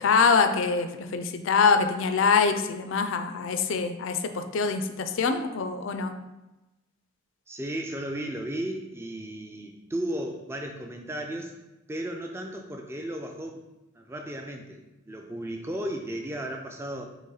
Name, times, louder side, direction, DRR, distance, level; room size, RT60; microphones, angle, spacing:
voice 1, 0.0-6.1, left 5 dB, 70° left, 8 dB, 0.4 m, -24 dB
voice 2, 7.5-11.5 11.9-13.6 13.9-17.1, right 1 dB, 10° right, 2 dB, 0.3 m, -35 dB
4.1 x 3.0 x 3.9 m, 1.0 s
head